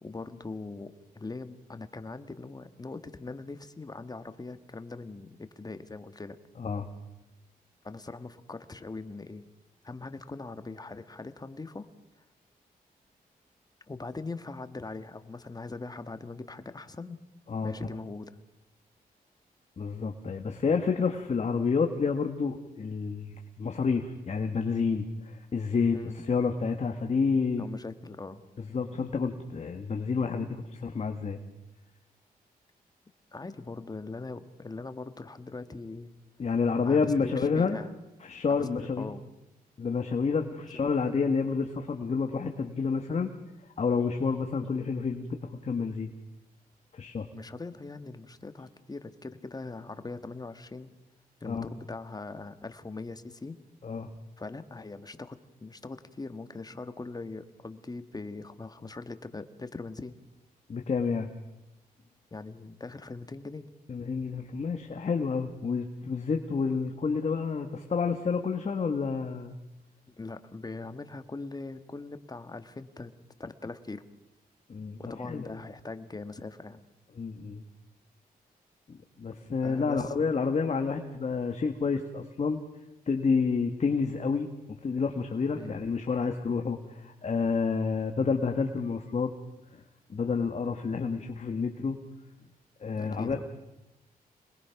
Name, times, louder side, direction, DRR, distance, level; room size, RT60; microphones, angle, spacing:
voice 1, 0.0-6.4 7.8-9.4 9.8-11.9 13.9-17.2 17.6-18.3 25.9-26.1 27.6-28.4 33.3-36.1 36.8-37.9 38.6-38.7 39.0-39.2 47.3-50.9 51.4-53.6 54.4-60.2 62.3-63.7 70.2-73.1 73.4-74.0 75.0-76.8 79.6-80.1 85.5-85.8 92.9-93.4, left 3 dB, 25° left, 10 dB, 1.5 m, -41 dB
voice 2, 6.6-6.9 17.5-17.7 19.8-26.0 26.3-27.6 28.7-31.4 36.4-37.8 38.2-39.1 39.8-43.3 43.8-46.1 46.9-47.3 51.4-51.7 53.8-54.1 60.7-61.3 63.9-69.5 74.7-75.0 75.3-75.5 77.2-77.6 79.2-82.6 83.1-84.5 84.8-89.3 89.7-89.8 90.1-92.0 92.8-93.4, left 5 dB, 45° left, 5 dB, 1.6 m, -29 dB
26.5 x 21.0 x 5.9 m, 0.97 s
cardioid pair, 75°, 16 cm